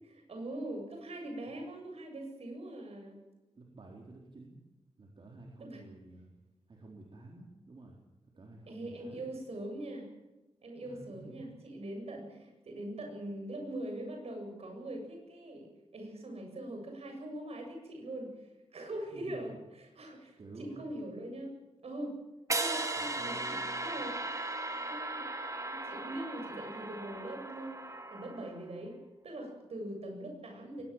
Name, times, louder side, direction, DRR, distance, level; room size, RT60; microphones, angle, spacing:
voice 1, 0.0-3.2 5.6-5.8 8.7-10.1 10.6-21.5 21.8-22.2 22.6-27.8 28.1-29.0 29.2-30.8, right 1 dB, 80° right, 3 dB, 7.8 m, -42 dB
voice 2, 3.5-4.6 5.0-6.3 6.7-8.0 8.4-9.2 10.8-11.5 19.1-19.6 20.4-20.8 23.0-23.9, right 2 dB, 55° right, 0 dB, 4.3 m, -51 dB
sound 1, 22.5-28.6, right 2 dB, 30° right, 2.4 m, -37 dB
23.0 x 20.5 x 7.5 m, 1.1 s
wide cardioid pair, 155°, 10 cm